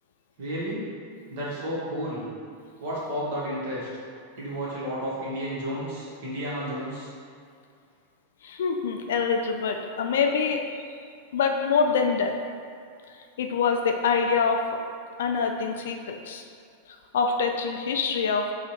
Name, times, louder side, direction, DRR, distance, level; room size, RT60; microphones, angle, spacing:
voice 1, 0.4-0.8 1.3-2.2 2.8-3.9 4.4-7.1, equal, 50° right, -7 dB, 1.5 m, -32 dB
voice 2, 8.4-10.6 11.3-12.3 13.4-14.8 15.2-16.4 17.1-18.5, left 5 dB, 60° left, 4 dB, 0.4 m, -25 dB
4.4 x 2.5 x 4.4 m, 2.3 s
figure-of-eight pair, 90°, 0 cm